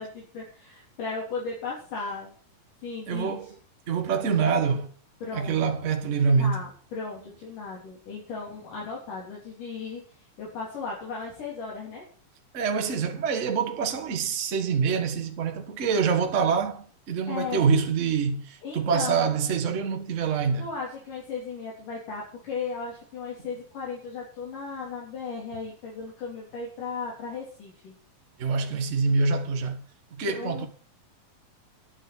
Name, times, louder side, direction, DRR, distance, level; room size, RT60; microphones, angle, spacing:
voice 1, 0.0-2.3 2.8-3.4 5.2-5.7 6.4-10.0 10.4-12.0 17.3-17.7 18.6-19.2 20.6-27.9 30.3-30.7, left 4 dB, 65° left, 5.1 m, -36 dB
voice 2, 3.1-3.5 3.9-4.9 5.3-6.6 12.5-20.7 28.4-29.8 30.1-30.7, right 5 dB, 50° right, 0.9 m, -25 dB
11.5 x 6.9 x 8.4 m
omnidirectional pair, 4.0 m